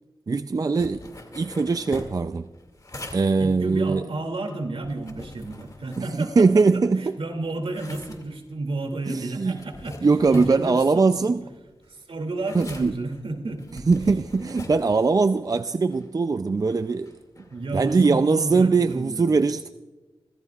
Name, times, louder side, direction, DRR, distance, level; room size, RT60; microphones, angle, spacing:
voice 1, 0.3-1.0 1.3-2.5 3.1-4.1 6.0-7.2 9.1-9.6 10.0-11.4 12.5-12.9 13.9-17.1 17.7-19.7, right 4 dB, 40° right, 0.4 m, -21 dB
sound 1, 0.7-7.0 7.3-18.9, left 1 dB, 40° left, 2.3 m, -44 dB
voice 2, 3.4-6.4 6.7-11.1 12.1-13.9 17.5-19.4, right 2 dB, 80° right, 2.6 m, -32 dB
29.5 x 15.0 x 2.4 m
wide cardioid pair, 80°, 9 cm